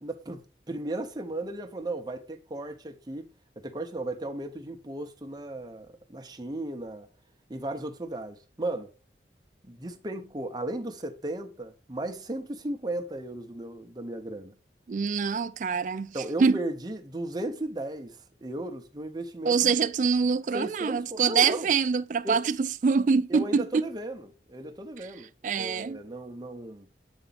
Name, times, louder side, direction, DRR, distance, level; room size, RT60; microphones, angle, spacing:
voice 1, 0.0-3.2 3.6-7.1 7.5-8.9 9.7-14.6 16.1-19.7 20.5-21.7 22.2-22.4 23.3-24.2 24.5-25.3 25.6-26.9, right 1 dB, 25° right, 0.7 m, -35 dB
voice 2, 14.9-16.6 19.4-23.8 25.0-25.1 25.4-26.0, right 5 dB, 45° right, 0.3 m, -25 dB
8.0 x 4.0 x 4.0 m
head